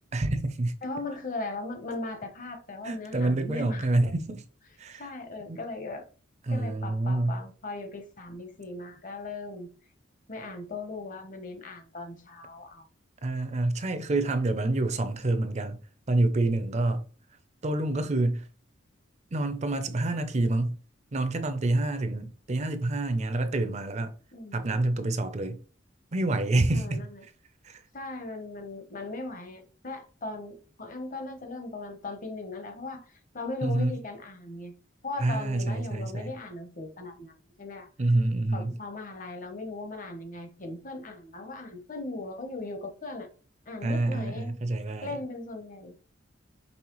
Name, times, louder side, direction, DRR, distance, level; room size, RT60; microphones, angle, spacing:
voice 1, 0.1-0.7 2.8-4.4 4.8-5.1 5.5-5.6 6.5-7.4 13.2-15.8 16.1-17.1 17.6-18.5 19.3-20.8 21.1-24.1 24.5-25.6 26.1-27.1 27.6-27.8 33.6-33.9 35.2-36.3 38.0-38.8 43.8-45.2, right 2 dB, 35° right, 0.5 m, -27 dB
voice 2, 0.8-3.9 5.0-6.1 6.5-9.7 10.3-12.8 24.3-24.8 26.7-27.2 27.9-34.7 35.0-37.9 38.5-43.3 43.7-44.5 45.0-45.9, left 2 dB, 45° left, 0.9 m, -38 dB
5.4 x 3.2 x 3.0 m
head